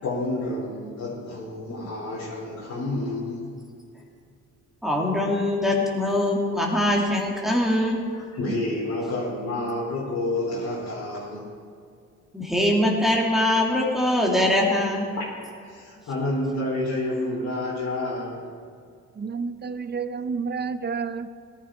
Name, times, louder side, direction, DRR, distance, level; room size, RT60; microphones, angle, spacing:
voice 1, 0.0-3.4 8.1-11.5 15.2-18.5, left 1 dB, 65° left, -6 dB, 3.6 m, -29 dB
voice 2, 4.8-8.0 12.3-15.1, left 1 dB, ahead, -2 dB, 2.3 m, -22 dB
voice 3, 19.2-21.3, right 5 dB, 35° right, 12 dB, 0.7 m, -30 dB
17.5 x 11.0 x 4.3 m, 2.3 s
cardioid pair, 90°, 30 cm